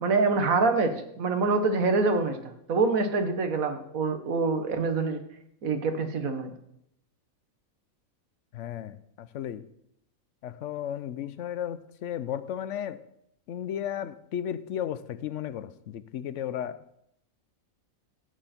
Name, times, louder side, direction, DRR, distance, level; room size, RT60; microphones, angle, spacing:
voice 1, 0.0-5.2 5.6-6.5, right 3 dB, 80° right, 1.7 m, -25 dB
voice 2, 8.5-9.7 10.4-13.0 13.5-16.8, left 10 dB, 65° left, 0.9 m, -34 dB
14.5 x 9.0 x 4.4 m
omnidirectional pair, 1.4 m